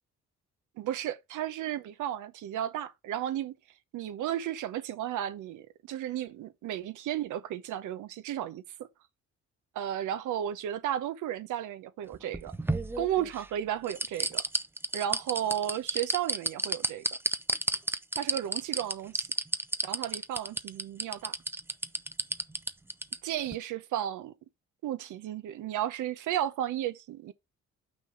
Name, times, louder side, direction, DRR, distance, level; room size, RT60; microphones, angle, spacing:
voice 1, 0.8-3.5 3.9-8.9 9.7-12.6 13.0-14.4 14.9-17.0 18.2-19.3 19.8-21.3 23.2-24.3 24.8-27.3, right 11 dB, 80° right, 0.8 m, -33 dB
sound 1, 12.1-13.4 13.9-23.2 23.5-23.6, right 2 dB, 10° right, 0.5 m, -31 dB
6.2 x 3.8 x 5.6 m
cardioid pair, 90°, 30 cm